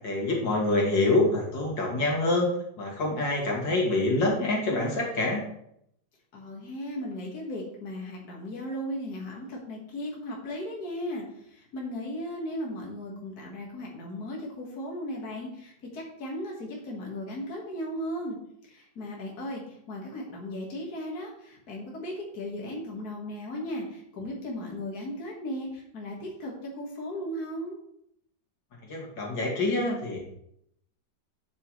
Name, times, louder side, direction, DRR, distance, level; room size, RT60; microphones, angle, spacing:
voice 1, 0.0-2.5 2.8-5.4 28.9-30.2, left 2 dB, 80° left, -2 dB, 3.0 m, -26 dB
voice 2, 6.3-18.4 18.6-27.8, equal, 55° left, -2 dB, 2.2 m, -36 dB
11.0 x 8.4 x 3.2 m, 0.74 s
omnidirectional pair, 2.0 m